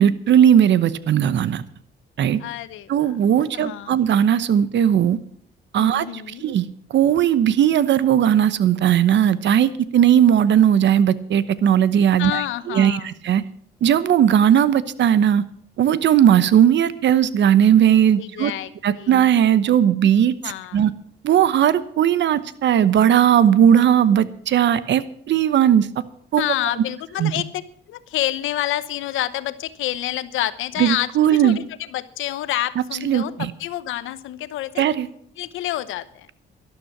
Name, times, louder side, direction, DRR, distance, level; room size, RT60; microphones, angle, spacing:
voice 1, 0.0-1.6 2.2-2.4 2.9-5.2 5.7-6.1 6.4-6.7 6.9-12.4 12.7-13.4 13.8-15.4 15.8-18.5 18.8-20.3 20.7-20.9 21.2-25.9 26.3-26.4 27.2-27.3 30.8-31.6 33.0-33.5 34.8-35.1, right 9 dB, 65° right, 16 dB, 0.9 m, -17 dB
voice 2, 2.4-3.1 3.5-4.0 5.8-6.4 12.2-13.1 18.2-19.2 20.4-20.8 26.4-27.5 27.9-34.9 35.4-36.3, left 13 dB, 85° left, 14 dB, 0.9 m, -28 dB
12.5 x 12.0 x 6.1 m, 0.64 s
cardioid pair, 90°, 20 cm